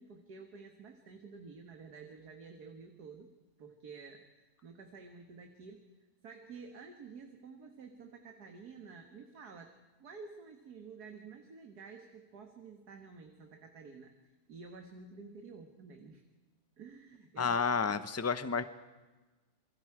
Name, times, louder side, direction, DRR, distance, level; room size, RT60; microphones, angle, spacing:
voice 1, 0.0-3.3 3.6-5.9 6.2-9.7 10.0-14.1 14.5-16.2 16.8-17.8, right 4 dB, 80° right, 4 dB, 2.1 m, -51 dB
voice 2, 17.4-18.6, left 5 dB, 15° left, 12 dB, 0.5 m, -30 dB
28.0 x 23.0 x 4.9 m, 1.2 s
omnidirectional pair, 1.7 m